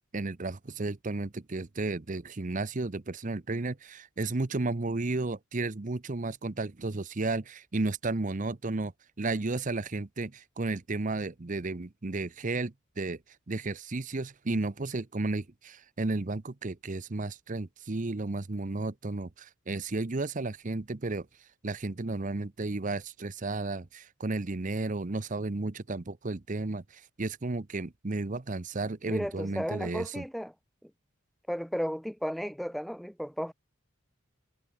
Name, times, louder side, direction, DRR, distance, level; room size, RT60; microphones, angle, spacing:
voice 1, 0.1-8.9 9.2-13.2 13.5-21.3 21.6-30.2, right 3 dB, 40° right, 0.8 m, -33 dB
voice 2, 29.1-30.5 30.8-30.9 31.5-33.5, equal, ahead, 0.5 m, -34 dB
head